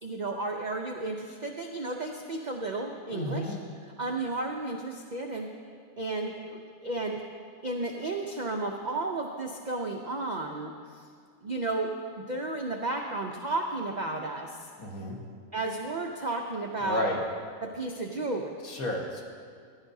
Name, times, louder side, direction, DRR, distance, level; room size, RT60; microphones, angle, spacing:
voice 1, 0.0-3.6 4.0-5.5 6.0-7.2 7.6-11.0 11.4-14.7 15.5-17.1 17.6-18.5, right 2 dB, 75° right, 2 dB, 0.4 m, -33 dB
voice 2, 3.1-3.6 14.8-15.2 16.8-17.2 18.6-19.2, left 1 dB, 65° left, -1 dB, 1.8 m, -31 dB
15.0 x 10.5 x 2.7 m, 2.1 s
omnidirectional pair, 1.6 m